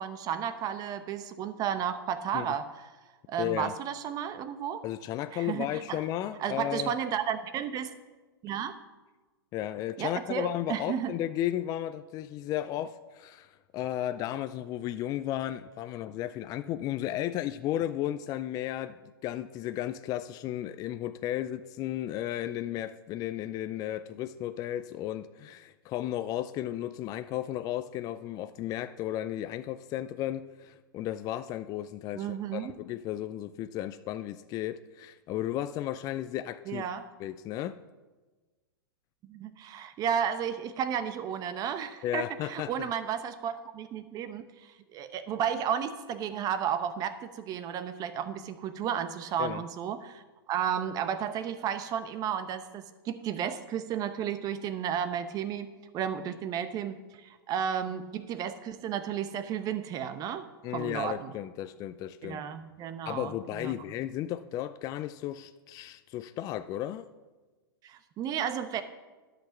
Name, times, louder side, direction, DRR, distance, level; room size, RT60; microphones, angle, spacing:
voice 1, 0.0-2.7 3.3-4.8 5.3-6.0 6.4-7.9 8.4-8.8 10.0-11.1 32.1-32.8 36.7-37.1 39.2-44.4 44.9-60.4 60.7-61.3 62.2-63.7 67.8-68.8, right 8 dB, 30° right, 11 dB, 1.0 m, -33 dB
voice 2, 3.4-3.7 4.8-6.9 9.5-19.0 19.2-36.8 37.2-37.8 42.0-42.9 49.4-49.6 60.6-62.4 63.1-67.1, left 12 dB, 30° left, 11 dB, 0.4 m, -34 dB
11.5 x 6.0 x 7.0 m, 1.3 s
hypercardioid pair, 110°, 12 cm